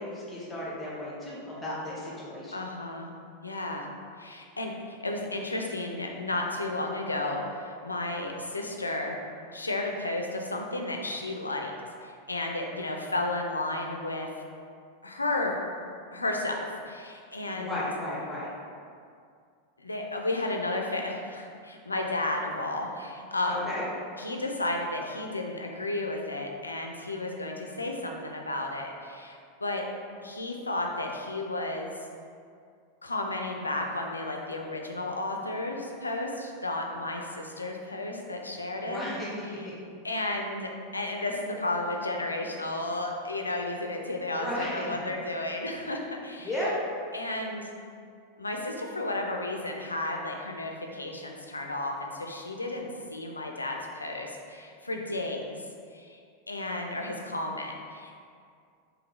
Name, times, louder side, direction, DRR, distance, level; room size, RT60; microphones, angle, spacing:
voice 1, 0.0-2.6 17.5-18.5 23.5-23.8 38.8-39.7 44.3-45.0 46.4-46.8, left 1 dB, 10° left, -6 dB, 1.0 m, -34 dB
voice 2, 2.5-3.1 3.4-3.9 4.2-9.2 9.5-11.7 12.0-14.3 15.0-15.5 16.1-17.9 19.8-23.8 24.2-29.8 30.2-31.9 33.0-39.0 40.0-46.5 47.1-47.7 48.4-55.6 55.9-56.2 56.5-58.2, left 2 dB, 80° left, 2 dB, 0.4 m, -33 dB
3.9 x 3.0 x 3.0 m, 2.3 s
figure-of-eight pair, 90°, 0 cm